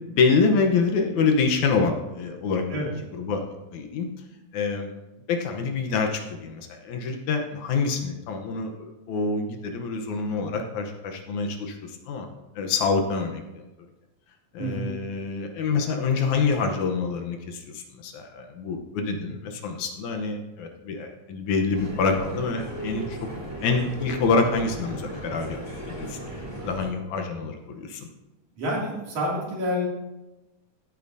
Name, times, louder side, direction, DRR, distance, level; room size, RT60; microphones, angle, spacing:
voice 1, 0.1-3.5 3.7-4.1 4.5-4.9 5.3-12.3 12.6-13.4 14.5-23.2 23.6-25.6 25.8-26.2 26.6-28.0, left 4 dB, 75° left, 4 dB, 2.3 m, -26 dB
voice 2, 14.6-14.9 28.6-29.9, equal, 70° right, -4 dB, 4.0 m, -28 dB
sound 1, 21.7-26.9, right 1 dB, 5° right, 3.3 m, -36 dB
15.5 x 8.7 x 2.7 m, 1.0 s
omnidirectional pair, 3.6 m